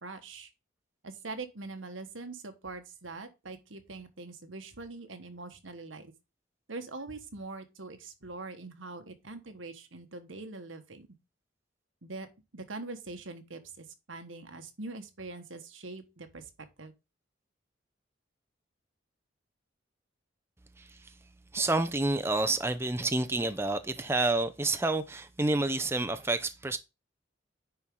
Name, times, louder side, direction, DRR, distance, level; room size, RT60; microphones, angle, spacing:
voice 1, 0.0-0.5 1.0-6.1 6.7-11.1 12.0-12.3 12.5-16.4 16.8-16.9, right 3 dB, 85° right, 1.4 m, -43 dB
voice 2, 20.8-21.1 21.5-26.8, right 2 dB, 15° right, 0.5 m, -29 dB
9.9 x 4.5 x 3.7 m
head